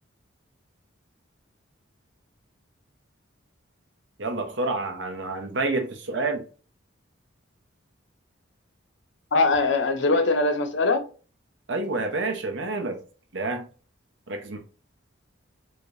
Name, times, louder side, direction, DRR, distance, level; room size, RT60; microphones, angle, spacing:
voice 1, 4.2-6.4 11.7-13.0 13.3-13.7 14.3-14.6, right 3 dB, 65° right, 1.0 m, -28 dB
voice 2, 9.3-11.1, left 3 dB, 65° left, 0.7 m, -22 dB
4.9 x 3.2 x 2.7 m
head